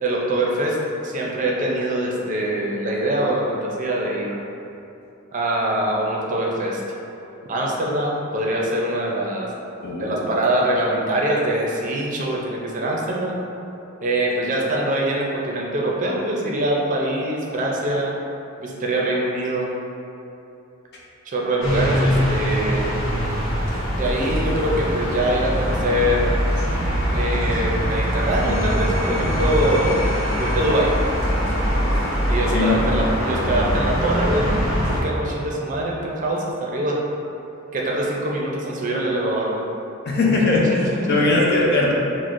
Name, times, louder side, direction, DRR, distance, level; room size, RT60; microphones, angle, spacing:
voice 1, 0.0-0.8 1.0-4.4 5.3-6.8 7.5-9.5 10.0-13.4 14.0-18.1 18.6-19.7 21.3-23.0 23.9-26.3 27.1-30.0 30.4-30.9 32.3-34.5 34.9-37.0 37.7-39.6 40.7-41.1, right 1 dB, 40° right, -3 dB, 0.5 m, -23 dB
voice 2, 9.8-10.2 32.5-32.8 40.0-41.9, left 2 dB, 50° left, -3 dB, 0.6 m, -19 dB
sound 1, 21.6-35.0, equal, 70° left, 1.1 m, -22 dB
6.0 x 2.1 x 2.5 m, 2.8 s
head